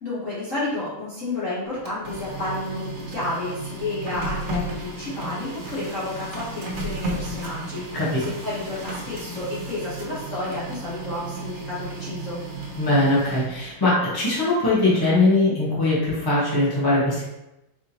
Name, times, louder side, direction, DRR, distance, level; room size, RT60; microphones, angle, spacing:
voice 1, 0.0-12.4, left 2 dB, 45° left, -9 dB, 1.4 m, -31 dB
Printer, 1.7-13.7, right 2 dB, 55° right, 0.8 m, -34 dB
voice 2, 12.8-17.2, left 2 dB, 15° left, -8 dB, 1.3 m, -21 dB
4.6 x 3.6 x 2.9 m, 0.93 s
omnidirectional pair, 2.1 m